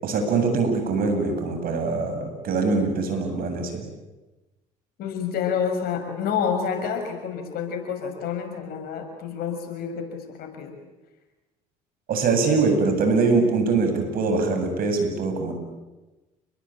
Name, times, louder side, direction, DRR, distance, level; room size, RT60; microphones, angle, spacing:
voice 1, 0.0-3.8 12.1-15.5, right 4 dB, 60° right, 6 dB, 7.9 m, -23 dB
voice 2, 5.0-10.7, left 7 dB, 65° left, 6 dB, 6.6 m, -28 dB
30.0 x 21.0 x 8.9 m, 1.1 s
hypercardioid pair, 70°, 17 cm